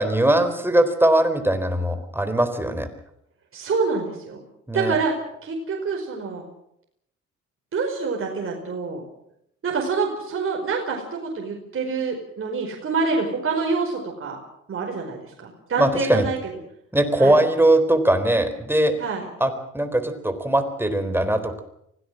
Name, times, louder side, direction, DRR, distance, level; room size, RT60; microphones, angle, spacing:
voice 1, 0.0-2.9 4.7-5.0 15.8-16.2 16.9-18.9 19.4-21.6, right 1 dB, 5° right, 8 dB, 3.9 m, -20 dB
voice 2, 3.5-4.4 4.7-5.1 5.4-6.4 7.7-9.0 9.6-14.4 14.7-16.4 17.2-17.4 19.0-19.3, right 4 dB, 45° right, 0 dB, 5.1 m, -26 dB
24.5 x 17.0 x 7.7 m, 0.75 s
cardioid pair, 90°, 30 cm